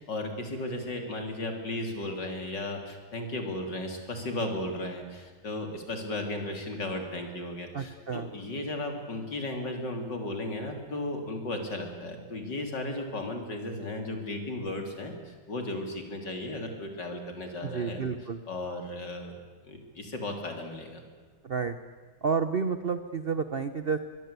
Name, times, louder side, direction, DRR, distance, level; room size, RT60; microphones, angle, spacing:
voice 1, 0.0-18.0 18.5-19.4 19.6-21.0, left 2 dB, 55° left, 4 dB, 4.0 m, -35 dB
voice 2, 7.7-8.3 17.6-18.4 21.4-21.8 22.2-24.0, right 5 dB, 50° right, 11 dB, 0.6 m, -30 dB
23.0 x 23.0 x 8.3 m, 1.4 s
omnidirectional pair, 2.3 m